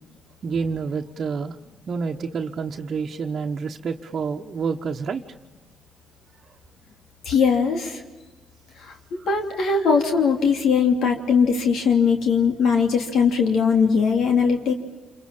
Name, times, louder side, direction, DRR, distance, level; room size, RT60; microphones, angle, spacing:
voice 1, 0.4-1.6 1.9-5.2 9.2-9.3, right 5 dB, 50° right, 1 dB, 1.2 m, -28 dB
voice 2, 7.2-8.0 8.8-14.7, left 5 dB, 75° left, 3 dB, 3.0 m, -20 dB
28.0 x 23.5 x 7.3 m, 1.2 s
cardioid pair, 90°, 0 cm